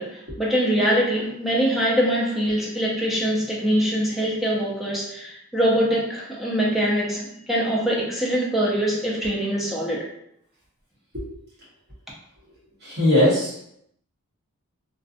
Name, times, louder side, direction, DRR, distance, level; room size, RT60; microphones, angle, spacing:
voice 1, 0.0-10.1, equal, ahead, -5 dB, 0.5 m, -23 dB
voice 2, 12.8-13.7, left 1 dB, 50° right, -7 dB, 1.1 m, -20 dB
2.5 x 2.4 x 2.5 m, 0.74 s
head